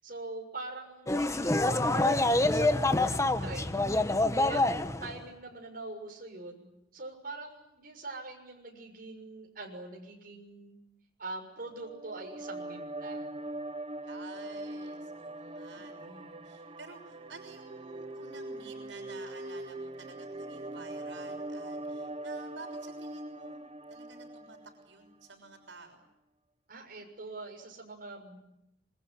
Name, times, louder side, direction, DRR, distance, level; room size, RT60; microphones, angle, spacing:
voice 1, 0.0-3.1 3.4-3.9 4.5-4.6 5.0-6.7 6.9-10.8 11.2-13.3 15.7-16.4 26.7-28.4, right 2 dB, 50° right, 2 dB, 6.7 m, -43 dB
sound 1, 1.1-5.2, left 2 dB, 15° left, 1.2 m, -26 dB
sound 2, 11.8-25.1, right 1 dB, 30° right, 1.0 m, -41 dB
voice 2, 14.0-23.6 23.9-24.6 24.8-26.0, right 3 dB, 85° right, 5 dB, 6.2 m, -51 dB
27.0 x 23.5 x 9.6 m, 0.83 s
head